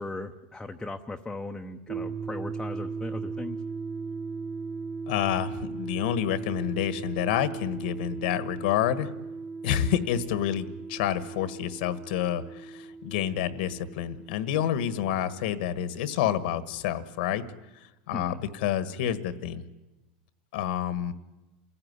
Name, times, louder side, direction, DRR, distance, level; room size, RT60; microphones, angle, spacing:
voice 1, 0.0-3.6 18.1-18.4, left 2 dB, 5° left, 2 dB, 0.8 m, -38 dB
sound 1, 1.9-15.8, right 4 dB, 40° right, 2.5 m, -38 dB
voice 2, 5.1-9.1 9.6-17.4 18.1-19.7 20.5-21.1, left 10 dB, 70° left, 14 dB, 1.5 m, -28 dB
28.5 x 16.0 x 9.7 m, 1.1 s
supercardioid pair, 145°, 5 cm